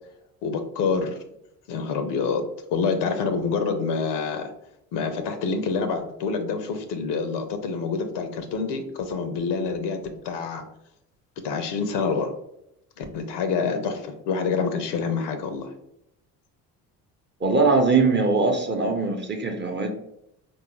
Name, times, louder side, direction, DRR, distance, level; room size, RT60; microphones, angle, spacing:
voice 1, 0.4-1.2 1.7-2.4 2.7-4.5 4.9-10.6 11.4-12.3 13.0-15.7, left 5 dB, 55° left, 8 dB, 0.8 m, -27 dB
voice 2, 17.4-19.9, right 3 dB, 20° right, 3 dB, 0.8 m, -21 dB
4.4 x 2.7 x 3.0 m, 0.79 s
hypercardioid pair, 55°, 49 cm